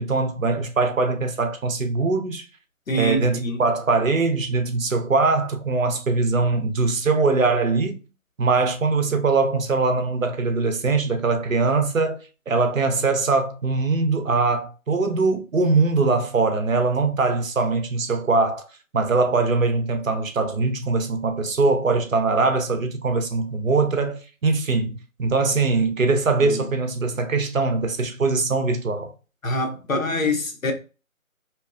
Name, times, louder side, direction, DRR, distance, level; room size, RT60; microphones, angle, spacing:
voice 1, 0.0-2.4 2.9-8.0 8.4-12.2 12.5-18.7 18.9-29.1, right 3 dB, 65° right, 0.7 m, -22 dB
voice 2, 2.9-3.6 26.4-26.7 29.4-30.7, left 1 dB, 65° left, 0.9 m, -25 dB
2.7 x 2.3 x 2.2 m
figure-of-eight pair, 180°, 43 cm